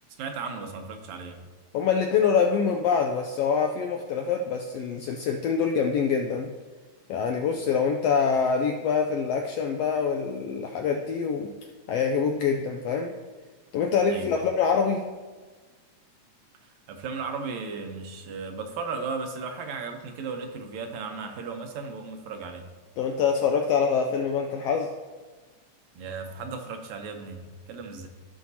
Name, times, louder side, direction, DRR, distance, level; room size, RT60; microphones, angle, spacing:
voice 1, 0.2-1.4 14.1-14.5 16.9-22.7 26.0-28.1, right 4 dB, 75° right, 5 dB, 2.0 m, -35 dB
voice 2, 1.7-6.5 7.1-11.5 11.9-13.1 13.7-15.0 23.0-24.9, left 6 dB, 90° left, 3 dB, 1.4 m, -25 dB
15.5 x 5.7 x 2.8 m, 1.4 s
omnidirectional pair, 3.4 m